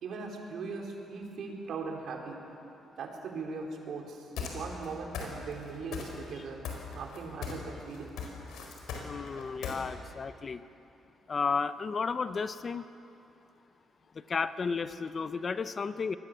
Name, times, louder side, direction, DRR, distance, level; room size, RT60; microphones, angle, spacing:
voice 1, 0.0-2.4 3.0-8.2, right 4 dB, 70° right, 1 dB, 4.1 m, -40 dB
sound 1, 4.4-4.9 5.1-5.6 5.9-6.4 6.6-7.7 7.9-9.7, left 6 dB, 85° left, 4.6 m, -38 dB
voice 2, 9.0-10.6 11.3-12.9 14.3-16.2, left 5 dB, 40° left, 12 dB, 0.8 m, -33 dB
25.5 x 20.5 x 7.5 m, 2.8 s
cardioid pair, 90°, 0 cm